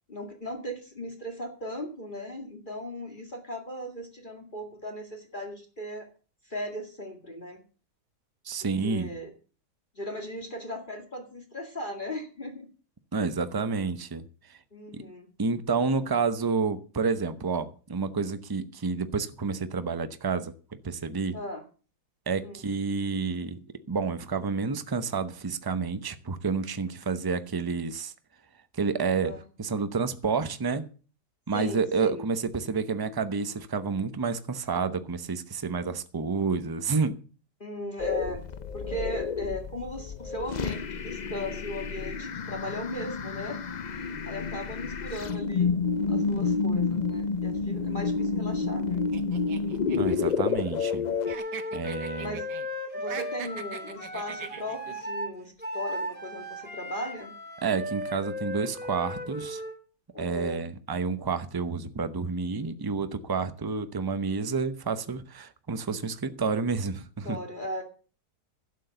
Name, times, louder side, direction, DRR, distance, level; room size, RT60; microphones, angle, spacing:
voice 1, 0.1-6.1 6.5-7.6 8.8-9.3 9.9-12.7 14.7-15.3 21.3-21.6 22.4-22.6 29.2-29.4 31.5-32.3 37.6-38.4 38.7-45.8 46.1-49.0 52.2-52.5 52.9-57.3 60.1-60.7 67.2-67.8, left 1 dB, 30° left, 4 dB, 2.3 m, -37 dB
voice 2, 8.4-9.1 13.1-14.2 14.5-14.6 14.9-15.0 15.4-20.5 20.8-21.4 22.3-23.6 23.9-28.1 28.7-30.8 31.5-37.2 49.9-51.1 51.7-52.4 57.6-59.6 60.2-67.4, right 4 dB, 25° right, 11 dB, 0.5 m, -29 dB
sound 1, 38.0-51.3, left 5 dB, 70° left, 0.4 m, -29 dB
sound 2, 49.1-51.0 51.3-52.7 53.0-54.9, right 8 dB, 85° right, 1.7 m, -41 dB
Wind instrument woodwind instrument, 51.2-59.8, left 1 dB, 5° right, 2.7 m, -36 dB
12.0 x 8.5 x 6.8 m, 0.38 s
omnidirectional pair, 1.8 m